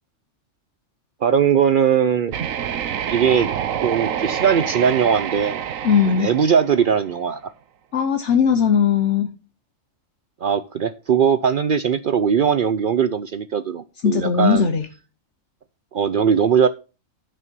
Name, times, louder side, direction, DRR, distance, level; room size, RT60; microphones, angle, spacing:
voice 1, 1.2-2.3 3.1-3.5 3.8-5.6 6.1-7.4 10.4-14.7 15.9-16.7, right 7 dB, 60° right, 12 dB, 0.5 m, -19 dB
sound 1, 2.3-7.2, right 9 dB, 85° right, 1.2 m, -27 dB
voice 2, 5.8-6.3 7.9-9.3 14.0-14.9, left 7 dB, 65° left, 6 dB, 1.2 m, -18 dB
9.6 x 5.6 x 5.3 m, 0.32 s
omnidirectional pair, 1.3 m